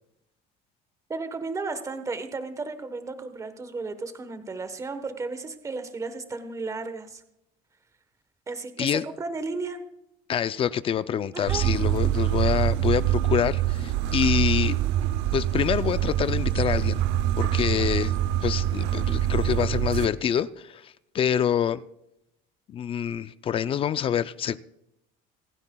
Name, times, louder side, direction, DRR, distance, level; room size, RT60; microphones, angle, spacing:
voice 1, 1.1-7.2 8.5-9.8 11.3-11.7, right 3 dB, 15° right, 9 dB, 1.1 m, -34 dB
voice 2, 10.3-14.8 15.3-17.0 17.4-18.1 18.4-21.8 22.7-24.6, left 9 dB, 30° left, 15 dB, 0.4 m, -26 dB
sound 1, 11.5-20.1, right 13 dB, 75° right, 0.7 m, -25 dB
27.5 x 9.6 x 2.3 m, 0.80 s
cardioid pair, 155°, 19 cm